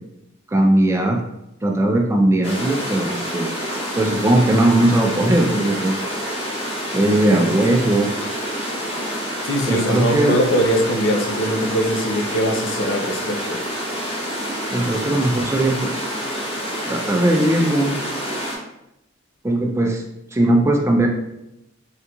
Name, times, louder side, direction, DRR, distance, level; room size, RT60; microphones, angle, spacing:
voice 1, 0.5-1.2 1.6-3.5 4.0-6.0 6.9-8.1 9.7-10.4 14.7-16.0 16.9-18.0 19.4-20.0 20.3-21.1, right 1 dB, 15° right, 1 dB, 0.3 m, -18 dB
sound 1, 2.4-18.6, equal, 30° left, 0.8 m, -27 dB
voice 2, 9.5-13.6, equal, 85° left, 2 dB, 0.5 m, -21 dB
3.6 x 2.9 x 2.3 m, 0.85 s
head